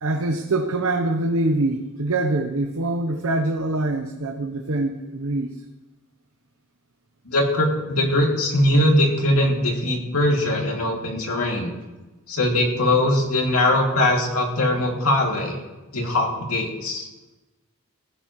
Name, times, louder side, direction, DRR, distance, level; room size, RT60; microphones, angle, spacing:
voice 1, 0.0-5.6, right 2 dB, 70° right, 4 dB, 0.9 m, -24 dB
voice 2, 7.3-11.7 12.3-15.6 15.9-17.0, left 1 dB, 80° left, 0 dB, 2.6 m, -21 dB
17.0 x 15.5 x 3.1 m, 1.1 s
head